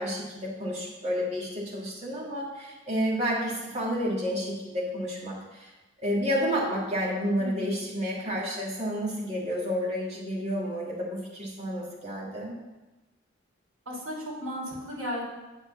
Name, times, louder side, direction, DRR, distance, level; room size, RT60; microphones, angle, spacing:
voice 1, 0.0-5.7 6.0-12.5, equal, 30° right, -5 dB, 2.1 m, -30 dB
voice 2, 13.9-15.2, equal, 85° right, -2 dB, 2.6 m, -35 dB
8.0 x 4.3 x 6.9 m, 1.1 s
head